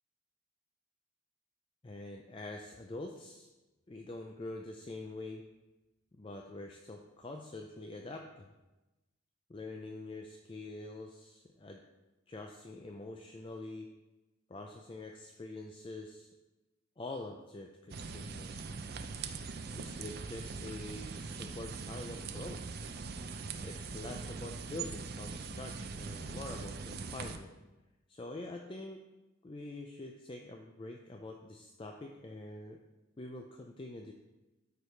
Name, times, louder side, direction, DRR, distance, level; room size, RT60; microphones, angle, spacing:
voice 1, 1.8-3.5 3.9-5.4 6.1-8.5 9.5-11.8 12.3-13.9 14.5-16.3 17.0-18.6 19.7-22.9 23.6-27.5 28.1-29.0 29.4-32.8 33.2-34.1, left 2 dB, 25° left, 2 dB, 0.4 m, -45 dB
sound 1, 17.9-27.4, right 4 dB, 50° right, 0.5 m, -42 dB
13.0 x 4.7 x 3.2 m, 1.1 s
head